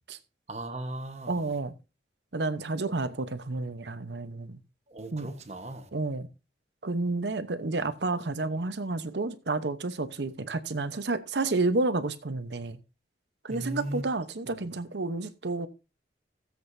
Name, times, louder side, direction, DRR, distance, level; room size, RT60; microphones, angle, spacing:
voice 1, 0.5-1.5 4.9-5.9 13.5-14.0, right 1 dB, 40° right, 1.3 m, -37 dB
voice 2, 1.3-1.8 2.3-4.6 5.1-5.3 5.9-6.3 6.8-12.8 13.4-15.7, right 3 dB, 80° right, 0.9 m, -30 dB
16.5 x 7.8 x 2.7 m
head